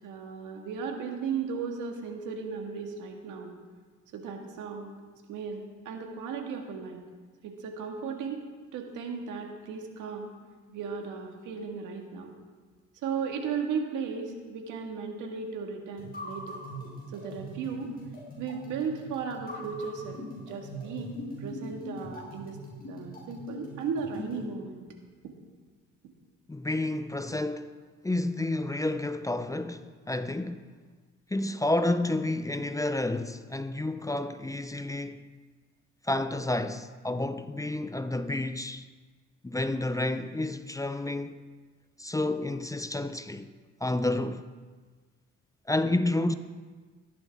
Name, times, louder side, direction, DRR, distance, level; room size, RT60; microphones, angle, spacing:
voice 1, 0.0-3.5 4.1-4.9 5.3-7.0 7.4-8.4 8.7-10.3 10.7-12.3 13.0-16.6 17.1-17.9 18.4-22.6 22.9-24.8 25.2-25.3, right 5 dB, 85° right, 1.8 m, -36 dB
sound 1, 16.0-24.5, equal, 30° left, 4.5 m, -42 dB
voice 2, 26.5-27.7 28.0-30.6 31.3-35.2 36.1-38.8 39.4-41.4 42.0-43.5 43.8-44.5 45.7-46.3, left 2 dB, 10° left, 0.5 m, -30 dB
15.0 x 12.0 x 3.6 m
cardioid pair, 90°, 30 cm